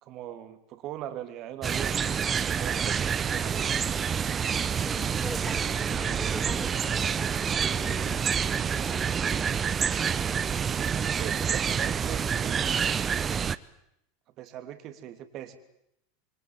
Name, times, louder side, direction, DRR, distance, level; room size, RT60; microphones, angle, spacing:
voice 1, 0.0-3.8 10.7-13.1 14.4-15.6, right 11 dB, 45° right, 8 dB, 3.1 m, -41 dB
sound 1, 1.6-13.6, right 7 dB, 30° right, 1.0 m, -27 dB
voice 2, 4.7-9.6, left 2 dB, 10° left, 4 dB, 6.0 m, -43 dB
26.5 x 25.0 x 7.6 m, 0.81 s
hypercardioid pair, 85°, 0 cm